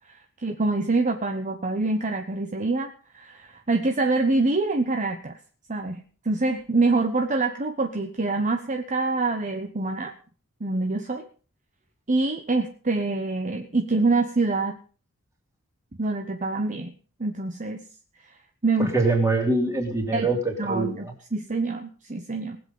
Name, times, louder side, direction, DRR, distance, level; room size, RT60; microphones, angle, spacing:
voice 1, 0.4-2.9 3.1-5.3 5.7-10.1 10.6-11.2 12.1-14.8 16.0-16.9 17.2-17.8 18.6-18.9 20.1-20.3 20.6-22.6, right 3 dB, 35° right, 5 dB, 1.0 m, -25 dB
voice 2, 18.8-21.1, right 2 dB, 15° right, 2 dB, 3.3 m, -24 dB
19.5 x 7.9 x 5.4 m, 0.40 s
head